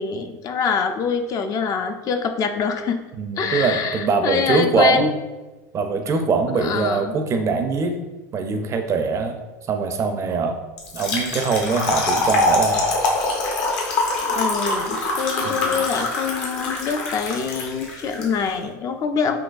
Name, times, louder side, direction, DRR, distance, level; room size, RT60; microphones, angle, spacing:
voice 1, 0.0-3.0 3.4-5.1 6.6-7.1 14.2-19.4, left 5 dB, 40° left, 7 dB, 0.3 m, -25 dB
voice 2, 3.2-5.1 5.7-8.0 8.3-9.4 9.7-10.6 10.9-12.9 15.5-15.7, right 4 dB, 35° right, 6 dB, 0.4 m, -22 dB
Trickle dribble / Fill (with liquid), 10.8-18.2, left 2 dB, 65° left, 0.9 m, -23 dB
3.9 x 2.8 x 2.4 m, 1.1 s
hypercardioid pair, 95°, 9 cm